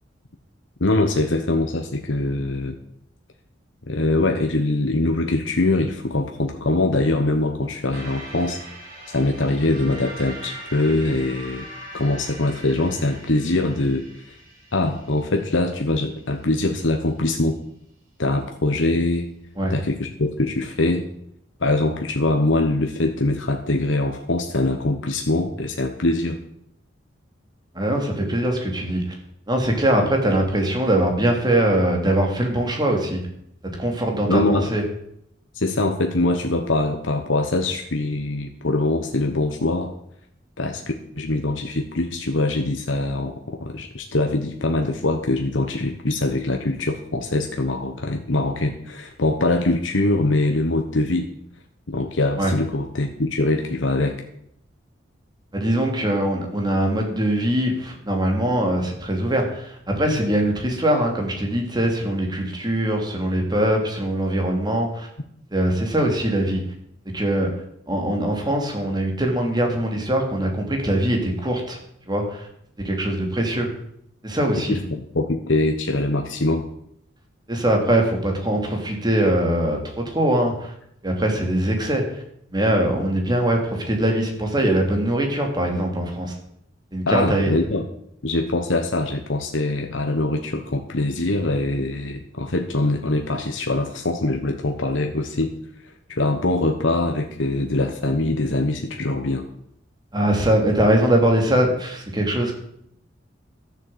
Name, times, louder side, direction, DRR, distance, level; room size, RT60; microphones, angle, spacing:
voice 1, 0.8-2.8 3.9-8.6 9.1-11.7 11.9-14.1 14.7-17.6 18.2-19.3 19.7-21.0 21.6-26.4 34.3-34.7 35.5-39.9 40.6-40.8 41.2-51.3 51.9-54.2 74.7-76.7 87.1-87.8 88.2-95.5 95.8-99.5, left 2 dB, 80° left, 4 dB, 1.2 m, -23 dB
sound 1, 7.9-16.4, right 1 dB, 55° right, 3.9 m, -41 dB
voice 2, 27.7-29.0 29.5-33.2 33.6-34.8 52.4-52.5 55.5-65.1 65.5-66.6 67.1-67.5 67.9-71.8 72.1-72.5 72.8-73.7 74.2-74.8 77.5-80.7 81.0-82.2 82.5-86.3 86.9-87.5 100.1-102.5, right 1 dB, 25° right, 2 dB, 3.0 m, -22 dB
13.0 x 7.4 x 8.0 m, 0.73 s
head